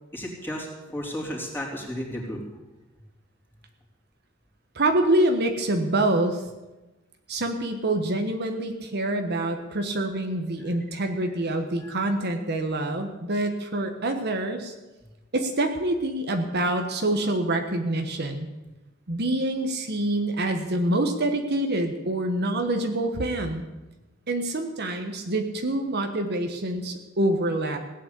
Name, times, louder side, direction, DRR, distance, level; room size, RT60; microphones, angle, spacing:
voice 1, 0.1-2.4 11.0-11.1 11.8-12.0, equal, 10° left, -2 dB, 3.6 m, -34 dB
voice 2, 4.7-6.4 7.3-14.7 15.3-18.5 19.1-23.6 24.3-27.8, right 1 dB, 55° right, 5 dB, 1.3 m, -26 dB
17.0 x 9.3 x 8.3 m, 1.1 s
head